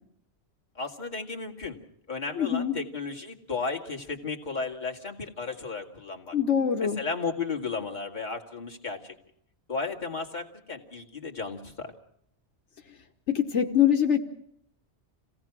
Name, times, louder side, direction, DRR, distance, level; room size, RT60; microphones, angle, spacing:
voice 1, 0.7-1.8 2.1-6.4 6.8-9.1 9.7-11.9, left 4 dB, 40° left, 0 dB, 2.5 m, -34 dB
voice 2, 2.4-2.7 6.3-7.0 13.3-14.2, left 9 dB, 80° left, 5 dB, 1.4 m, -23 dB
27.5 x 17.5 x 6.1 m, 0.72 s
omnidirectional pair, 1.2 m